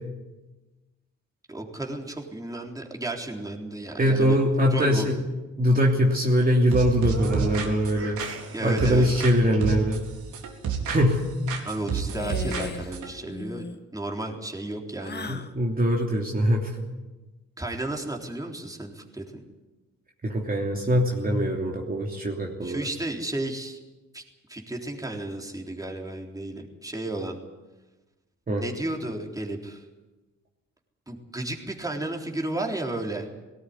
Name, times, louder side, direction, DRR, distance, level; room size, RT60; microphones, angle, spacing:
voice 1, 1.5-4.4 4.7-5.2 8.5-9.1 11.6-13.6 13.9-15.4 17.6-19.4 22.6-23.8 24.1-24.2 24.5-27.4 28.6-29.8 31.1-33.3, right 2 dB, 10° right, 1 dB, 3.7 m, -33 dB
voice 2, 4.0-5.2 5.6-8.2 8.6-10.0 10.9-11.2 15.3-16.7 20.2-22.9 28.5-28.6, equal, 30° right, -1 dB, 3.0 m, -22 dB
sound 1, 6.7-9.3 9.6-11.2 11.5-13.1, right 6 dB, 80° right, 4.0 m, -30 dB
sound 2, 7.0-10.0, right 4 dB, 50° right, 4.6 m, -41 dB
sound 3, 12.1-12.9 13.2-13.8 15.0-15.5, left 3 dB, 35° left, 1.7 m, -36 dB
19.0 x 18.0 x 9.7 m, 1.1 s
cardioid pair, 90°, 30 cm